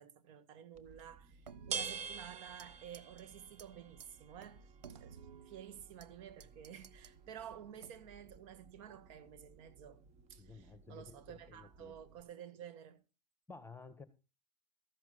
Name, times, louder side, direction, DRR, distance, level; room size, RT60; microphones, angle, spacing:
voice 1, 0.0-10.0 10.3-13.0, right 9 dB, 55° right, 2.0 m, -52 dB
sound 1, 0.7-12.2, right 6 dB, 30° right, 1.5 m, -50 dB
sound 2, 1.4-2.7 2.9-3.2 3.6-3.7 4.0-4.1 4.4-6.1 6.4-7.2 7.8-8.2, right 7 dB, 85° right, 0.8 m, -55 dB
voice 2, 10.4-12.0 13.5-14.1, left 4 dB, 10° left, 1.6 m, -54 dB
14.5 x 11.5 x 4.1 m
hypercardioid pair, 100°, 21 cm